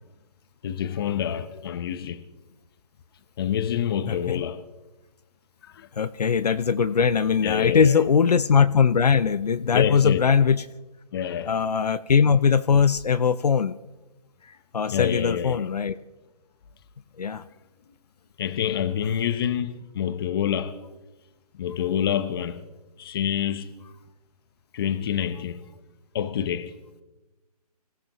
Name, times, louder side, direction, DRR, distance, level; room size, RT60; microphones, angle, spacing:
voice 1, 0.6-2.2 3.4-4.6 5.6-5.9 7.4-7.9 9.7-10.2 11.1-11.5 14.9-15.7 18.4-20.8 21.5-22.6 23.0-23.7 24.7-25.6 26.1-26.7, left 9 dB, 35° left, 1.0 m, -27 dB
voice 2, 4.1-4.4 6.0-10.7 11.5-13.8 14.5-16.0 17.2-17.4, left 6 dB, 75° left, 0.7 m, -21 dB
26.0 x 15.5 x 3.1 m
hypercardioid pair, 150°, 20 cm